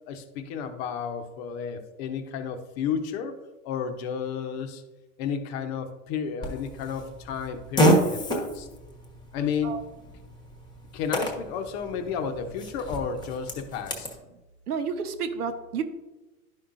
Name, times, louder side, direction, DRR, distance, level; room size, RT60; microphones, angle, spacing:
voice 1, 0.1-3.4 3.6-4.8 5.2-8.7 9.3-9.8 10.9-14.1, left 7 dB, 40° left, 7 dB, 0.9 m, -32 dB
Fart, 6.4-14.2, right 1 dB, 10° left, 1.2 m, -29 dB
voice 2, 14.7-15.8, right 6 dB, 75° right, 8 dB, 1.1 m, -30 dB
11.0 x 5.6 x 2.6 m, 1.1 s
hypercardioid pair, 125°, 45 cm